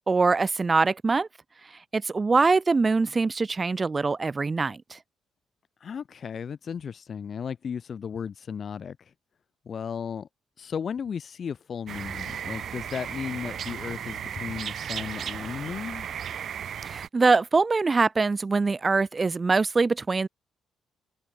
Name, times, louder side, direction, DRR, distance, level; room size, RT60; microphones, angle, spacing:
voice 1, 0.1-1.3 1.9-5.0 16.8-20.3, right 4 dB, 30° right, 0.5 m, -23 dB
voice 2, 5.8-9.1 9.7-10.3 10.6-16.1, left 7 dB, 50° left, 2.1 m, -35 dB
sound 1, 11.9-17.1, right 8 dB, 60° right, 1.9 m, -35 dB
cardioid pair, 90°, 0 cm